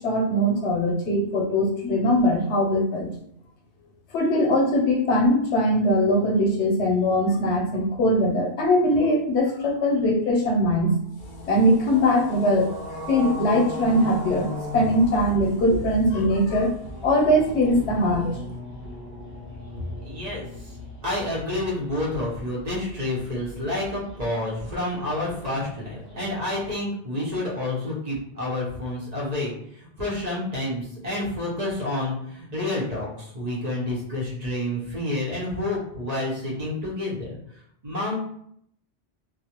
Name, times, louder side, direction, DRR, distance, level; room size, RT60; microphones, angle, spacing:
voice 1, 0.0-3.1 4.1-10.9 11.5-12.7 13.1-16.7 17.0-18.4, equal, 90° left, 0 dB, 0.9 m, -21 dB
sound 1, 11.2-26.8, left 1 dB, 20° left, 0.7 m, -38 dB
voice 2, 20.0-20.7 21.0-37.4 37.8-38.2, left 1 dB, 45° right, -5 dB, 0.7 m, -29 dB
2.3 x 2.1 x 2.8 m, 0.69 s
omnidirectional pair, 1.1 m